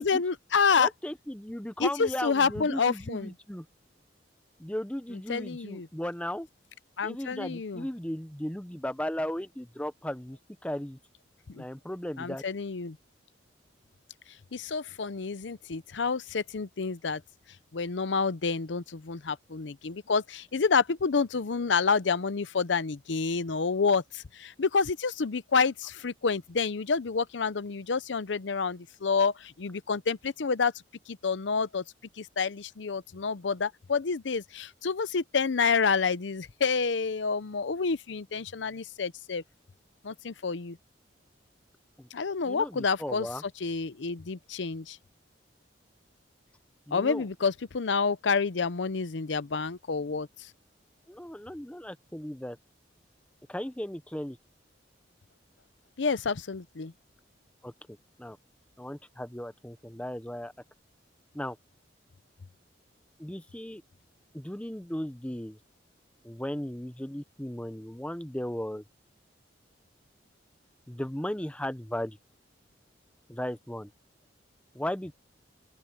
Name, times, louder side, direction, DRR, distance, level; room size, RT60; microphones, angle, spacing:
voice 1, 0.0-0.9 1.8-3.3 5.3-5.9 7.0-7.8 11.5-11.6 12.2-13.0 14.5-17.2 17.7-30.7 31.1-31.8 32.2-39.4 40.0-40.8 42.1-43.3 43.6-45.0 46.9-50.3 56.0-56.9, left 5 dB, 75° left, 0.7 m, -28 dB
voice 2, 0.8-3.7 4.6-6.5 7.0-11.0 11.5-12.4 42.0-42.1 42.4-43.4 46.9-47.3 51.1-52.6 53.5-54.4 57.6-58.4 58.8-60.5 61.3-61.6 63.2-63.8 64.3-65.6 66.2-68.8 70.9-72.2 73.3-73.9 74.7-75.1, left 1 dB, 5° left, 0.9 m, -36 dB
open air
head